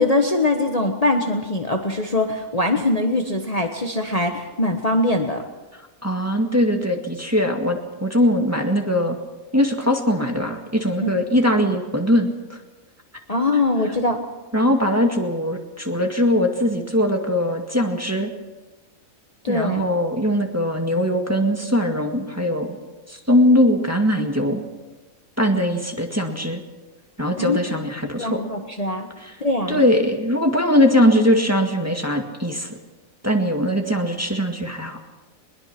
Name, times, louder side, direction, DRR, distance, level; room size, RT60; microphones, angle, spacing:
voice 1, 0.0-5.4 11.0-11.1 13.3-14.2 19.4-19.8 27.4-27.6 28.2-29.1 29.4-29.8, left 2 dB, 30° left, 3 dB, 1.4 m, -22 dB
voice 2, 6.0-9.2 9.5-12.6 14.5-18.3 19.5-22.8 23.1-24.6 25.4-26.6 27.2-28.4 29.2-29.3 29.7-32.8 33.2-35.0, equal, 10° right, 2 dB, 2.0 m, -21 dB
21.5 x 21.5 x 6.0 m, 1.2 s
omnidirectional pair, 1.5 m